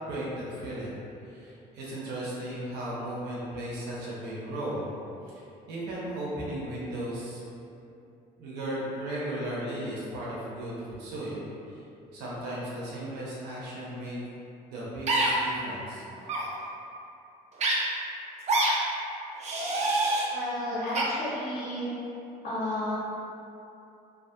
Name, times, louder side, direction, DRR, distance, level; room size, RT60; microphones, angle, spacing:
voice 1, 0.1-1.0 1.3-4.9 5.2-7.4 8.4-11.4 11.7-11.8 12.1-14.2 14.7-16.0, right 1 dB, 85° right, -6 dB, 0.6 m, -36 dB
sound 1, 15.1-15.3 16.2-16.4 17.6-17.7 18.5-18.7 19.4-20.3 20.9-21.0, right 2 dB, 40° right, 0.4 m, -25 dB
voice 2, 20.3-21.9 22.4-23.0, left 1 dB, 60° left, -8 dB, 0.9 m, -32 dB
2.4 x 2.2 x 2.6 m, 2.7 s
cardioid pair, 110°, 17 cm